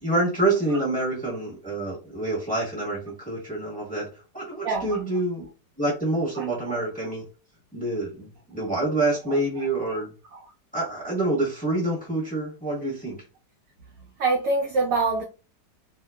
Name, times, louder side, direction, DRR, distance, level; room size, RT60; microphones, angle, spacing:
voice 1, 0.0-4.1 4.3-5.5 5.8-7.3 7.7-10.1 10.7-13.2, right 2 dB, 5° left, 0.8 m, -27 dB
voice 2, 4.6-5.0 6.4-6.8 9.3-10.0 10.3-10.4 14.2-15.2, right 3 dB, 75° right, 0.8 m, -26 dB
2.7 x 2.4 x 2.2 m
omnidirectional pair, 1.9 m